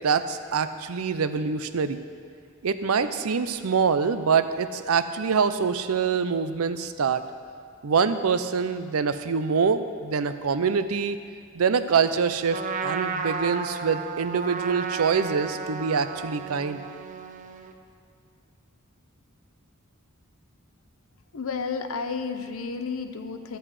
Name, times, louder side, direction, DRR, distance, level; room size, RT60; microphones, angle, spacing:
voice 1, 0.0-2.0 2.6-7.2 7.8-11.2 11.5-16.8, right 5 dB, 85° right, 11 dB, 0.5 m, -25 dB
Trumpet, 12.5-17.7, right 5 dB, 35° right, 0.6 m, -33 dB
voice 2, 21.3-23.6, left 5 dB, 75° left, 7 dB, 0.7 m, -31 dB
13.0 x 7.9 x 4.8 m, 2.3 s
head